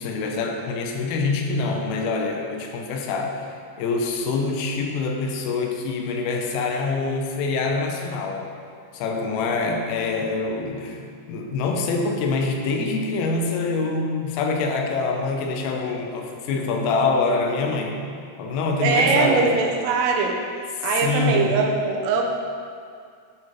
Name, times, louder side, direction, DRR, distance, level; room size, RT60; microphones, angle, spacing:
voice 1, 0.0-3.5 3.8-8.5 8.9-11.0 11.3-18.0 18.4-19.6 20.8-21.6, left 3 dB, 85° left, 2 dB, 3.4 m, -25 dB
voice 2, 18.8-20.4 20.8-22.2, right 4 dB, 85° right, 0 dB, 3.4 m, -21 dB
11.0 x 4.9 x 5.5 m, 2.2 s
omnidirectional pair, 5.9 m